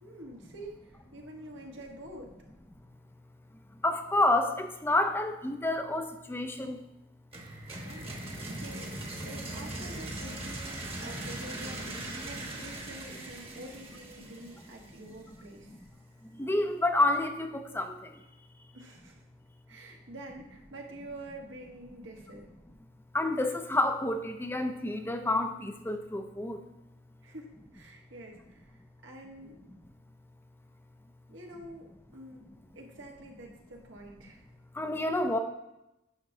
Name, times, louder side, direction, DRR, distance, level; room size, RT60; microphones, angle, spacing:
voice 1, 0.0-2.3 7.8-15.7 18.7-19.2 19.7-22.5 27.2-29.6 31.3-34.4, right 1 dB, 75° right, 0 dB, 1.3 m, -47 dB
voice 2, 3.8-6.8 16.4-17.9 23.1-26.6 34.8-35.4, left 2 dB, 10° left, 6 dB, 0.4 m, -29 dB
sound 1, 7.3-15.1, right 1 dB, 30° right, 1.2 m, -40 dB
10.0 x 5.7 x 2.7 m, 0.92 s
head